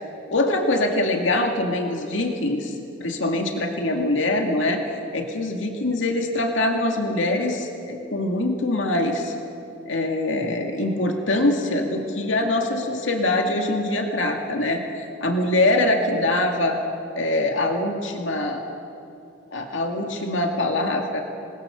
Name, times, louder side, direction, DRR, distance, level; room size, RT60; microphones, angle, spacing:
voice 1, 0.3-4.8 5.1-9.3 9.9-16.8 17.2-18.6 19.5-21.2, left 2 dB, 80° left, 2 dB, 2.2 m, -23 dB
27.0 x 20.5 x 7.0 m, 2.7 s
head